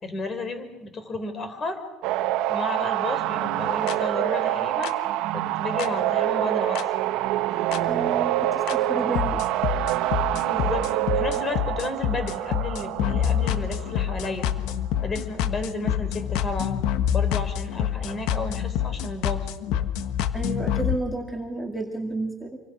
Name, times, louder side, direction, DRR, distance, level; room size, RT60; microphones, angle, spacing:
voice 1, 0.0-1.8 2.5-4.9 5.3-6.8 10.3-14.5 15.0-16.8 17.1-19.5, left 2 dB, 30° left, 9 dB, 4.1 m, -32 dB
sound 1, 2.0-14.4 18.2-18.4, right 14 dB, 65° right, 1.2 m, -26 dB
sound 2, 3.9-4.0 4.8-4.9 5.8-5.9 6.8-6.9 7.7-7.8 8.7-8.8 9.2-21.0, left 9 dB, 70° left, 1.4 m, -27 dB
voice 2, 7.8-9.5 20.3-22.6, right 2 dB, ahead, 1 dB, 2.3 m, -31 dB
26.5 x 25.0 x 6.3 m, 1.0 s
cardioid pair, 125°, 0 cm